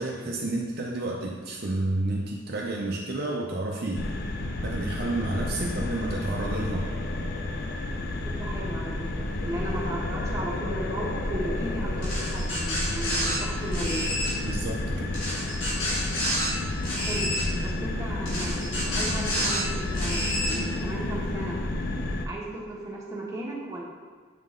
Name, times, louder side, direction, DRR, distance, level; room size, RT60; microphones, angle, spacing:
voice 1, 0.0-4.0 4.6-6.9 14.4-15.1, right 2 dB, 50° right, -1 dB, 0.5 m, -30 dB
sound 1, 3.9-22.3, left 2 dB, 50° left, 0.4 m, -31 dB
voice 2, 8.3-14.2 16.8-17.3 17.6-21.6 22.2-23.8, right 1 dB, 15° right, -5 dB, 1.1 m, -36 dB
sound 2, 12.0-13.4 13.7-14.3 15.1-16.5 16.8-17.4 18.3-19.6 19.9-20.6, equal, 75° left, 1.8 m, -29 dB
7.2 x 3.8 x 3.7 m, 1.5 s
head